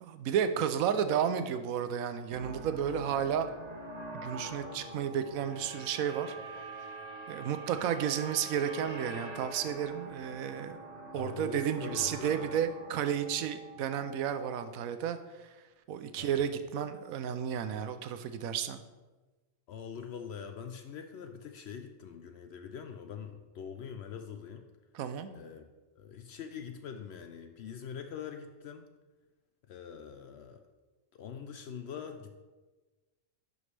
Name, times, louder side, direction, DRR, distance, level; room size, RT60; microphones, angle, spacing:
voice 1, 0.0-3.5 4.1-6.3 7.3-10.8 11.1-15.5 15.9-18.8 24.9-25.3, right 8 dB, 80° right, 10 dB, 1.0 m, -32 dB
sound 1, 2.3-14.4, right 2 dB, 30° right, 1.1 m, -45 dB
sound 2, 4.6-14.7, right 5 dB, 60° right, 1.0 m, -52 dB
voice 2, 11.1-12.5 16.2-16.5 19.7-24.7 25.3-25.6 26.0-28.8 29.7-30.6 31.1-32.4, left 7 dB, 65° left, 6 dB, 0.7 m, -44 dB
11.0 x 5.2 x 3.3 m, 1.2 s
omnidirectional pair, 1.4 m